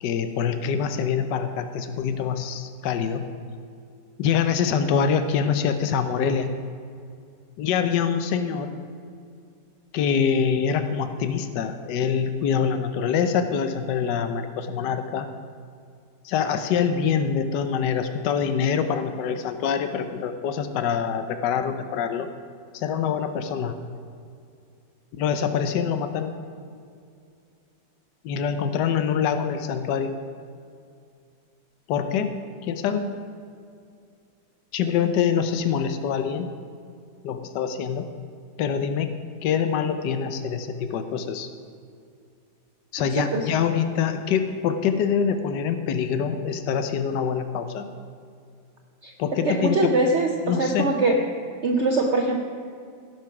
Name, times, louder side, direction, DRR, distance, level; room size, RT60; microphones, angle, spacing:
voice 1, 0.0-3.2 4.2-6.5 7.6-8.7 9.9-15.3 16.2-22.3 22.7-23.8 25.2-26.3 28.2-30.2 31.9-32.3 32.6-33.1 34.7-36.5 37.2-38.1 38.6-39.1 39.4-41.5 42.9-47.9 49.2-50.0 50.4-50.9, left 7 dB, 80° left, 9 dB, 1.4 m, -25 dB
voice 2, 43.2-43.5 49.0-49.1 49.4-51.2 51.6-52.4, right 2 dB, 50° right, 2 dB, 0.9 m, -22 dB
16.5 x 6.2 x 5.9 m, 2.3 s
omnidirectional pair, 1.8 m